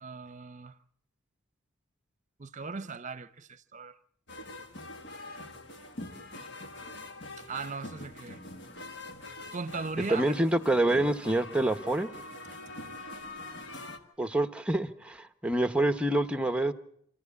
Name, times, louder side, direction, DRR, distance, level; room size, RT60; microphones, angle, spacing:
voice 1, 0.0-0.8 2.4-3.9 7.4-8.4 9.5-10.4 12.8-12.9, right 4 dB, 35° right, 0.8 m, -38 dB
sound 1, 4.3-14.0, left 2 dB, 55° left, 1.7 m, -44 dB
voice 2, 10.1-12.1 14.2-16.7, right 1 dB, 5° right, 0.9 m, -27 dB
27.0 x 14.0 x 8.4 m
head